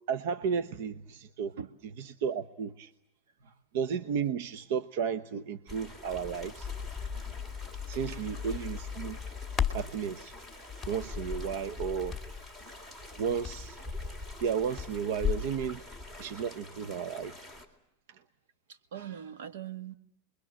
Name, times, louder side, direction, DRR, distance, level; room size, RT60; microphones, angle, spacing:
voice 1, 0.1-1.5 2.0-2.9 3.7-6.7 7.9-9.2 9.7-10.4 10.9-12.2 13.1-13.8 14.4-15.8 16.2-17.4 18.1-18.2, right 7 dB, 65° right, 12 dB, 1.0 m, -33 dB
sound 1, 5.7-17.6, left 2 dB, 20° right, 3.6 m, -45 dB
Crackle, 6.3-15.5, left 8 dB, 10° left, 2.3 m, -37 dB
voice 2, 18.7-19.9, right 9 dB, 85° right, 10 dB, 1.9 m, -42 dB
29.0 x 22.0 x 7.6 m, 0.77 s
supercardioid pair, 150°, 0 cm